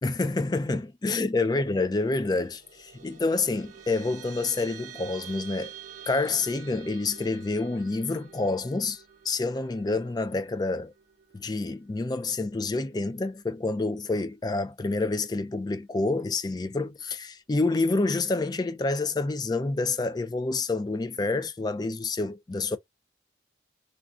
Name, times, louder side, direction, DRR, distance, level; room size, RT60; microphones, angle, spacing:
voice 1, 0.0-5.7 6.1-10.9 11.3-22.8, left 3 dB, 20° left, 0.3 m, -28 dB
sound 1, 2.0-12.8, right 9 dB, 40° right, 0.6 m, -48 dB
3.2 x 2.6 x 2.4 m
head